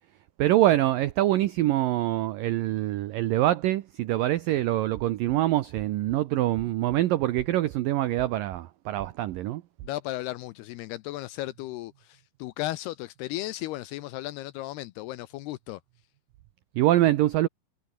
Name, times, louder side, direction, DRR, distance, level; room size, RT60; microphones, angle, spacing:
voice 1, 0.4-9.6 16.8-17.5, right 15 dB, 90° right, 1.9 m, -24 dB
sound 1, 4.9-5.4 5.8-6.2 6.6-7.0 7.4-7.8 8.2-8.6 9.0-9.4 9.8-10.0, right 14 dB, 70° right, 3.2 m, -44 dB
voice 2, 9.8-15.8, left 16 dB, 80° left, 2.5 m, -35 dB
omnidirectional pair, 5.2 m